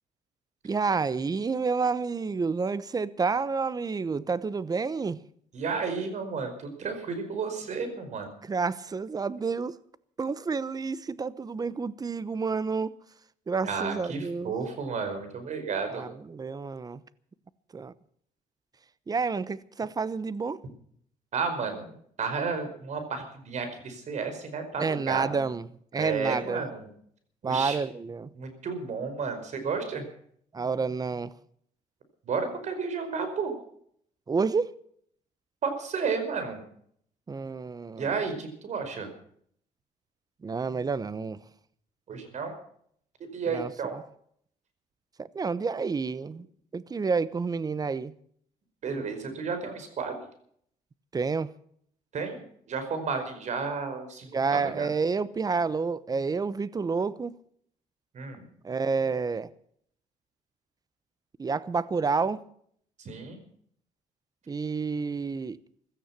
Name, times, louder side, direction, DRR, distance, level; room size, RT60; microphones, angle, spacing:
voice 1, 0.6-5.2 8.4-9.8 10.2-13.0 13.5-14.5 15.9-17.0 17.7-17.9 19.1-20.6 24.8-25.6 25.9-26.6 27.4-28.3 30.5-31.4 34.3-34.8 37.3-38.2 40.4-41.4 43.5-44.0 45.2-46.5 46.7-48.1 51.1-51.5 54.3-57.4 58.6-59.5 61.4-62.4 64.5-65.6, right 4 dB, 25° right, 0.9 m, -29 dB
voice 2, 5.5-8.3 13.6-16.0 21.3-25.4 25.9-26.9 27.4-27.8 28.3-30.0 32.2-33.5 35.6-36.6 37.9-39.1 42.1-42.5 43.2-43.9 48.8-50.2 52.1-52.4 52.7-54.9 58.1-58.5 63.0-63.4, right 5 dB, 55° right, 5.1 m, -32 dB
16.5 x 13.5 x 5.9 m
cardioid pair, 90°, 14 cm